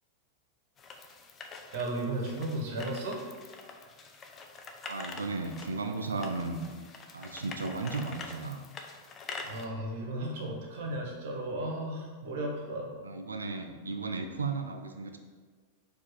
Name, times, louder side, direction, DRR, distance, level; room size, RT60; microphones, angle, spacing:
sound 1, 0.8-9.7, left 4 dB, 25° left, 0.4 m, -45 dB
voice 1, 1.7-3.2 9.4-12.9, right 1 dB, 50° right, -1 dB, 0.9 m, -35 dB
voice 2, 4.9-6.7 7.1-8.6 10.5-10.6 13.0-15.2, right 3 dB, 75° right, 5 dB, 0.3 m, -35 dB
4.5 x 2.5 x 4.6 m, 1.5 s
figure-of-eight pair, 90°, 0 cm